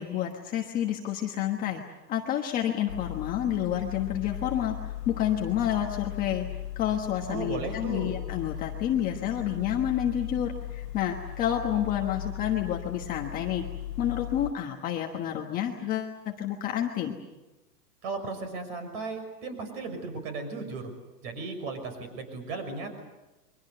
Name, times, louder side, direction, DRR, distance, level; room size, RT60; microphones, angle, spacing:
voice 1, 0.0-6.4 6.8-13.6 14.0-17.1, left 10 dB, 15° left, 2 dB, 1.3 m, -29 dB
sound 1, 2.9-14.5, left 12 dB, 80° left, 1.3 m, -38 dB
voice 2, 7.3-8.1 18.0-20.9 21.2-23.0, right 4 dB, 40° right, 8 dB, 6.1 m, -36 dB
28.5 x 23.5 x 6.8 m, 1.1 s
hypercardioid pair, 160°, 49 cm